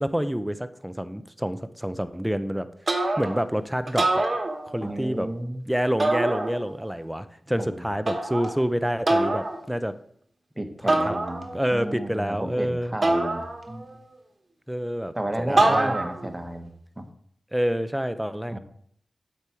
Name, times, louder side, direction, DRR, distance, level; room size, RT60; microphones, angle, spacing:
voice 1, 0.0-2.7 3.2-4.3 4.7-5.3 5.7-9.9 10.8-11.2 11.5-12.9 14.7-15.9 17.5-18.6, equal, 5° right, 11 dB, 0.6 m, -28 dB
sound 1, 2.9-3.5 3.9-5.0 6.0-6.9 8.1-8.6 9.1-9.6 10.9-11.7 13.0-14.0 15.6-16.3, right 2 dB, 45° right, 1.3 m, -25 dB
voice 2, 4.8-5.6 7.6-7.9 10.6-13.9 15.1-16.7 17.0-17.1 18.5-18.6, right 1 dB, 20° right, 6 dB, 1.2 m, -32 dB
8.1 x 5.4 x 4.5 m, 0.66 s
cardioid pair, 55°, 0 cm